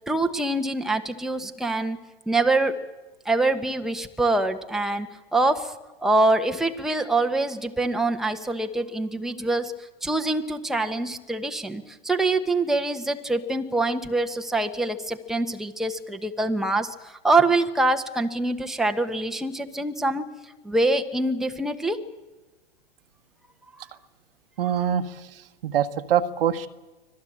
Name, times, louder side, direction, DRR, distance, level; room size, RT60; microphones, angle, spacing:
voice 1, 0.1-2.0 2.3-2.8 3.2-5.1 5.3-5.7 6.0-9.7 10.0-20.2 20.6-22.0, right 2 dB, ahead, 4 dB, 1.3 m, -24 dB
voice 2, 24.6-25.2 25.6-26.7, right 9 dB, 70° right, 9 dB, 1.4 m, -24 dB
25.0 x 17.0 x 8.8 m, 1.1 s
hypercardioid pair, 115°, 29 cm